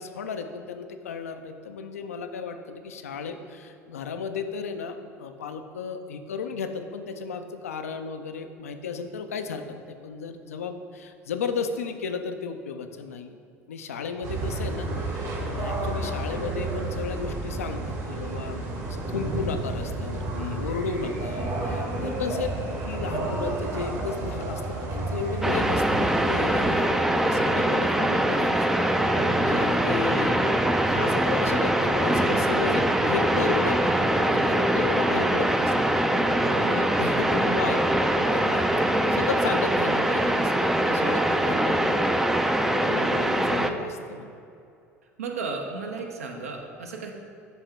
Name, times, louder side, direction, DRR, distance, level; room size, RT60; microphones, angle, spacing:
voice 1, 0.0-13.4 13.7-22.5 22.8-26.9 27.2-30.5 30.9-35.7 36.5-37.8 38.2-42.2 42.7-44.3, left 5 dB, 70° left, 7 dB, 0.4 m, -34 dB
sound 1, 14.2-26.8, right 2 dB, 45° right, 1.2 m, -31 dB
sound 2, 25.4-43.7, right 1 dB, 5° right, 0.3 m, -23 dB
voice 2, 36.3-36.7 43.0-43.7 45.2-47.1, right 4 dB, 75° right, 2 dB, 0.7 m, -35 dB
10.5 x 3.5 x 3.4 m, 2.5 s
figure-of-eight pair, 65°, 8 cm